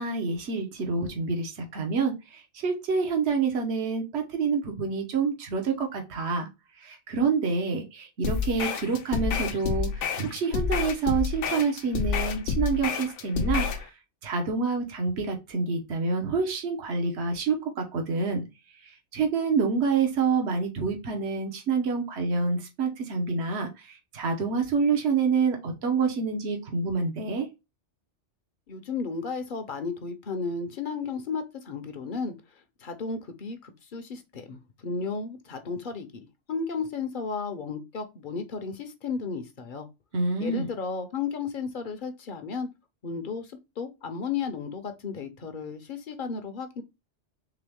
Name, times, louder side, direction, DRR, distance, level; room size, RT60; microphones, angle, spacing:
voice 1, 0.0-6.5 6.8-13.9 14.2-18.4 18.8-27.5 40.1-40.7, right 4 dB, 65° right, 1.2 m, -27 dB
sound 1, 8.2-13.8, left 6 dB, 85° left, 1.0 m, -29 dB
voice 2, 28.7-32.3 32.8-39.9 40.4-42.7 43.0-46.8, left 5 dB, 50° left, 0.8 m, -34 dB
3.8 x 3.4 x 3.4 m
omnidirectional pair, 1.2 m